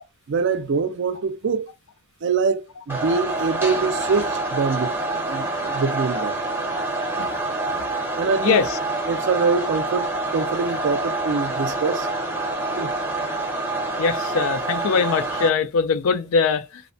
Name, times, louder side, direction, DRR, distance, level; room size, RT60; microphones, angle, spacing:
voice 1, 0.3-1.7 2.2-4.9 5.3-6.4 8.2-8.6 9.1-12.1 12.8-12.9, right 4 dB, 60° right, 0.4 m, -24 dB
sound 1, 2.9-15.5, right 2 dB, 10° right, 0.6 m, -26 dB
voice 2, 8.4-8.8 14.0-16.8, left 5 dB, 75° left, 0.4 m, -22 dB
2.6 x 2.1 x 2.6 m
head